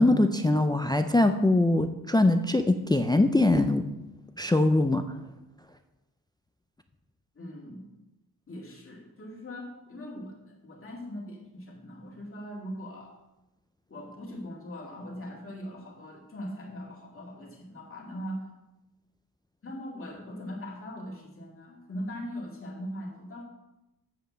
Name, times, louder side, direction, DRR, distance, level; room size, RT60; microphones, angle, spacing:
voice 1, 0.0-3.9 4.4-5.1, left 2 dB, 10° left, 8 dB, 0.3 m, -22 dB
voice 2, 7.3-7.9 8.5-13.1 13.9-18.4 19.6-23.4, equal, 35° left, -1 dB, 2.2 m, -40 dB
7.8 x 5.2 x 7.1 m, 0.96 s
wide cardioid pair, 145°, 37 cm